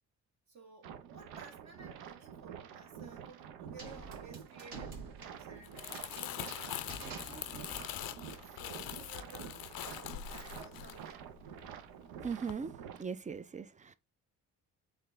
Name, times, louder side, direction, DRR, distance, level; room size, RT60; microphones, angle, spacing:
voice 1, 0.5-7.8 8.4-9.7 10.1-11.3, right 4 dB, 45° right, 1.0 m, -55 dB
sound 1, 0.8-13.0, right 8 dB, 80° right, 0.6 m, -48 dB
sound 2, 3.8-7.9, right 3 dB, 60° right, 1.4 m, -49 dB
Crumpling crinkling, 5.5-11.9 12.2-12.5, left 12 dB, 65° left, 0.5 m, -43 dB
voice 2, 12.2-13.9, right 6 dB, 20° right, 0.3 m, -40 dB
4.0 x 2.7 x 3.2 m
supercardioid pair, 55°, 38 cm